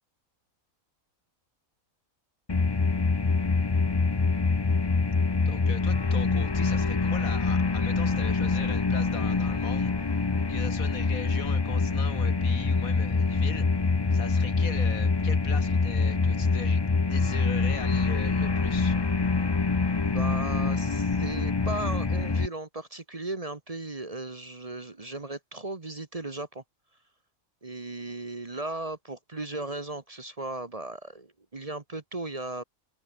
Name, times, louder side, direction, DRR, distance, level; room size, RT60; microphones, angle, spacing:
sound 1, 2.5-22.5, left 4 dB, 25° left, 0.6 m, -25 dB
voice 1, 5.4-10.2 10.5-13.7 14.1-16.8 17.1-19.0, left 5 dB, 85° left, 2.6 m, -40 dB
voice 2, 20.0-26.6 27.6-32.6, right 2 dB, 30° right, 1.2 m, -36 dB
omnidirectional pair, 1.4 m